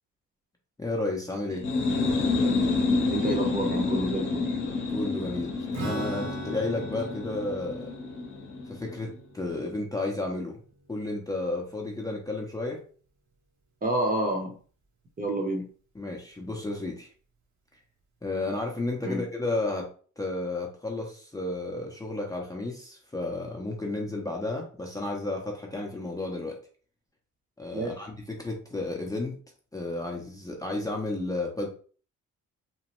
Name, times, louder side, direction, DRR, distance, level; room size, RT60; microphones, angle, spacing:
voice 1, 0.8-1.7 4.9-7.9 8.7-10.6 10.9-12.8 15.9-17.1 18.2-19.9 20.2-26.6 27.6-29.3 29.7-31.7, left 2 dB, 10° left, -1 dB, 0.6 m, -32 dB
sound 1, 1.5-9.0, left 3 dB, 40° left, 0.8 m, -28 dB
voice 2, 3.1-4.5 13.8-14.5 15.2-15.7 19.0-19.2 27.7-27.9, right 1 dB, 30° right, 2 dB, 0.8 m, -28 dB
Strum, 5.7-11.4, right 1 dB, 70° right, 1.0 m, -41 dB
3.0 x 2.1 x 2.9 m, 0.42 s
cardioid pair, 90°, 30 cm